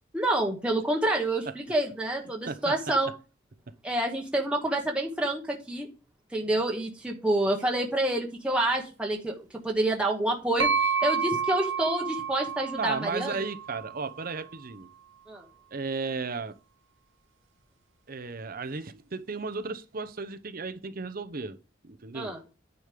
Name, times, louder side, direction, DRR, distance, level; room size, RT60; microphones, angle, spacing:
voice 1, 0.1-3.1 3.8-5.9 6.3-10.7 11.0-13.3 15.3-15.5 22.1-22.4, right 1 dB, 5° right, 1.2 m, -28 dB
voice 2, 2.4-2.7 3.7-3.8 12.8-14.9 15.7-16.6 18.1-21.6 21.8-22.4, right 4 dB, 45° right, 0.7 m, -34 dB
sound 1, 10.6-14.4, right 6 dB, 80° right, 2.1 m, -30 dB
9.6 x 5.2 x 5.2 m
head